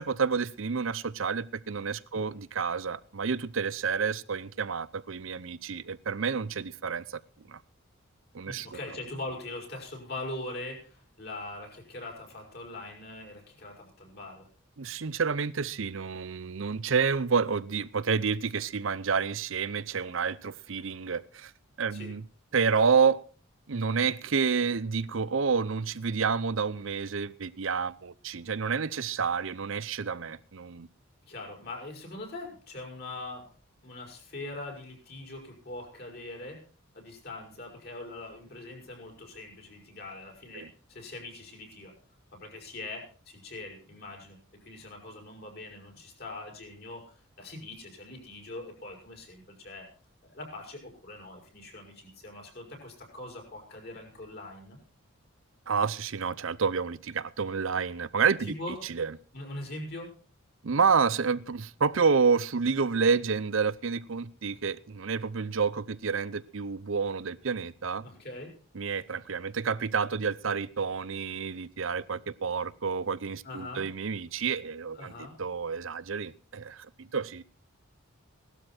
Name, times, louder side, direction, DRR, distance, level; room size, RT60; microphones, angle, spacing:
voice 1, 0.0-7.2 7.5-7.6 8.3-8.7 14.8-21.5 21.8-22.2 22.5-23.2 23.7-30.9 40.5-40.7 55.7-58.5 58.9-59.1 60.6-68.1 68.7-75.1 75.4-77.4, right 5 dB, 65° right, 18 dB, 0.7 m, -29 dB
voice 2, 8.5-14.5 21.9-22.1 31.3-33.5 33.8-36.6 36.9-41.9 42.3-44.4 44.6-49.9 50.3-54.8 58.4-58.8 59.3-60.1 68.0-68.6 73.4-73.9 74.9-75.4, left 2 dB, 45° left, 2 dB, 5.6 m, -42 dB
17.5 x 12.5 x 4.4 m, 0.38 s
head